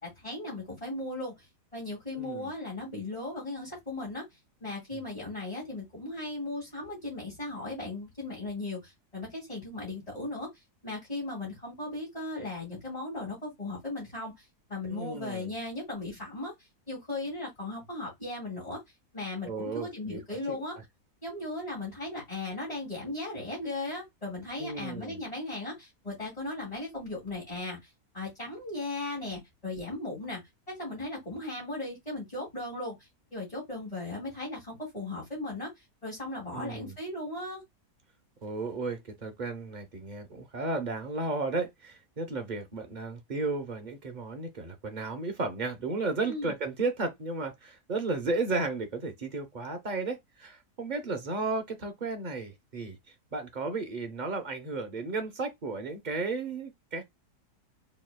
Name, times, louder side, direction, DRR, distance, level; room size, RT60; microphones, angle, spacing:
voice 1, 0.0-1.5 1.7-4.3 4.6-10.5 10.8-14.4 14.7-16.5 16.9-18.8 19.1-20.8 21.2-27.9 28.1-30.4 30.7-35.7 36.0-37.6 46.3-46.5, left 2 dB, 20° left, 2.2 m, -37 dB
voice 2, 2.2-2.5 4.9-5.0 14.9-15.5 19.4-20.6 24.6-25.2 36.5-36.9 38.4-57.0, right 3 dB, 40° right, 0.7 m, -34 dB
4.5 x 3.4 x 2.2 m
omnidirectional pair, 1.7 m